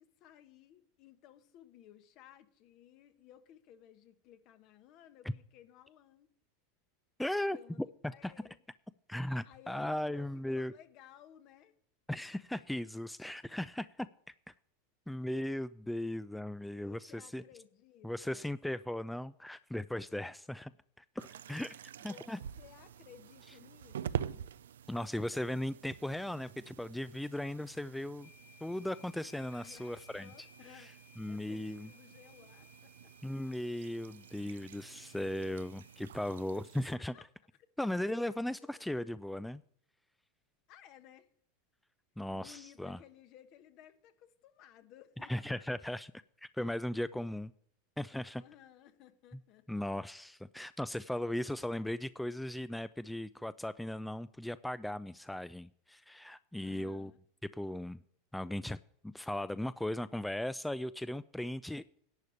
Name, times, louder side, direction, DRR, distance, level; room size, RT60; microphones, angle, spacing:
voice 1, 0.0-6.3 7.5-8.6 9.4-11.7 16.7-18.5 22.0-22.3 22.6-24.5 29.5-30.9 31.3-33.1 33.4-33.5 36.5-36.6 36.9-37.3 38.3-38.9 40.7-41.3 42.3-45.6 48.3-49.8 56.6-57.2, left 11 dB, 50° left, 1.1 m, -58 dB
voice 2, 7.2-7.6 8.0-8.3 9.1-10.7 12.1-14.1 15.1-17.4 18.0-20.7 21.0-21.7 22.0-22.4 24.9-28.3 28.6-30.3 30.7-30.9 31.2-31.9 33.2-37.1 37.8-39.6 42.2-43.0 45.3-46.1 46.4-47.5 48.0-48.4 49.7-57.1 57.5-58.0 58.3-58.8 59.0-61.8, left 1 dB, 5° left, 0.3 m, -37 dB
sound 1, 21.2-37.0, right 9 dB, 85° right, 0.4 m, -47 dB
sound 2, 28.2-36.0, left 6 dB, 85° left, 4.2 m, -62 dB
11.0 x 4.9 x 8.3 m
hypercardioid pair, 100°, 0 cm